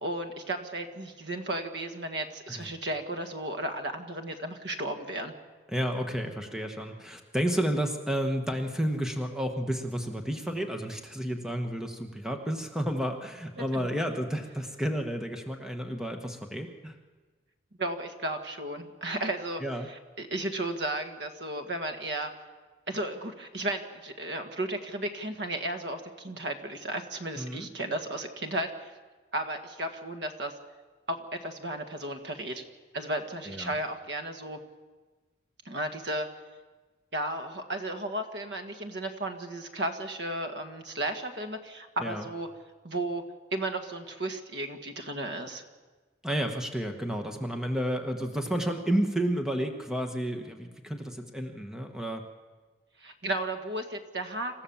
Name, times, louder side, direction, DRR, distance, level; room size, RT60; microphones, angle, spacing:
voice 1, 0.0-5.3 13.6-13.9 17.8-19.6 19.9-22.3 22.9-28.9 29.3-30.5 31.1-32.6 32.9-34.6 35.6-36.3 37.1-42.5 42.8-43.2 43.5-45.6 53.0-54.6, right 1 dB, 70° right, 5 dB, 1.8 m, -34 dB
voice 2, 5.7-17.0 19.6-19.9 27.4-27.7 33.5-33.7 42.0-42.2 46.2-52.2, equal, 5° right, 5 dB, 1.2 m, -31 dB
27.0 x 14.5 x 7.2 m, 1.3 s
head